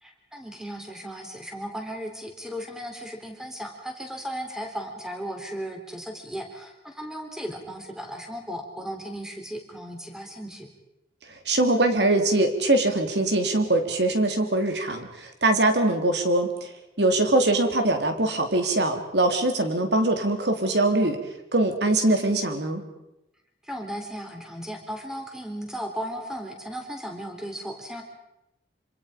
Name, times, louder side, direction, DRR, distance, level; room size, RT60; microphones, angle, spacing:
voice 1, 0.0-10.7 23.7-28.0, equal, 5° right, 3 dB, 3.9 m, -36 dB
voice 2, 11.4-16.7 17.0-21.2 21.5-22.8, right 2 dB, 70° right, 5 dB, 3.4 m, -22 dB
26.5 x 26.5 x 5.3 m, 0.90 s
head